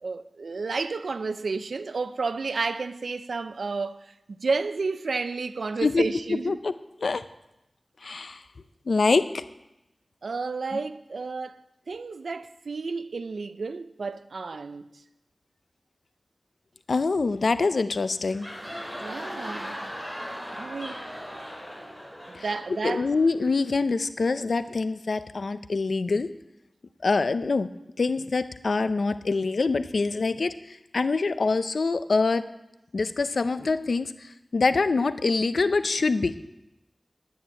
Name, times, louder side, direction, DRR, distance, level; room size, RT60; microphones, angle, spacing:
voice 1, 0.0-4.0 4.3-6.6 10.2-11.6 11.9-14.9 19.0-19.9 20.5-21.1 22.3-23.1, right 4 dB, 90° right, 0.6 m, -31 dB
voice 2, 8.0-8.4 8.9-9.4 16.9-18.5 22.3-22.4 22.8-26.3 27.0-27.7 28.0-30.5 30.9-32.5 32.9-34.1 34.5-36.3, left 3 dB, 80° left, 0.6 m, -25 dB
sound 1, 18.1-23.7, equal, 10° left, 3.8 m, -38 dB
10.0 x 9.4 x 8.8 m
wide cardioid pair, 50°, 0 cm